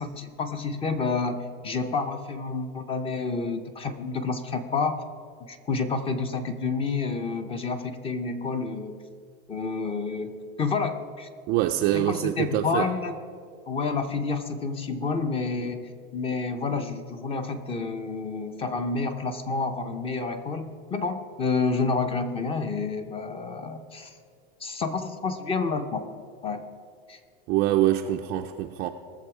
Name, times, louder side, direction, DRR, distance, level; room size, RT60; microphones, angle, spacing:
voice 1, 0.0-5.0 5.5-9.0 9.5-11.3 11.9-13.2 13.7-24.2 24.6-26.1 26.4-26.6 27.1-27.2, left 4 dB, 20° left, 0.7 m, -29 dB
voice 2, 11.5-12.9 27.5-28.9, right 13 dB, 30° right, 0.4 m, -24 dB
19.0 x 7.1 x 4.8 m
supercardioid pair, 140°, 31 cm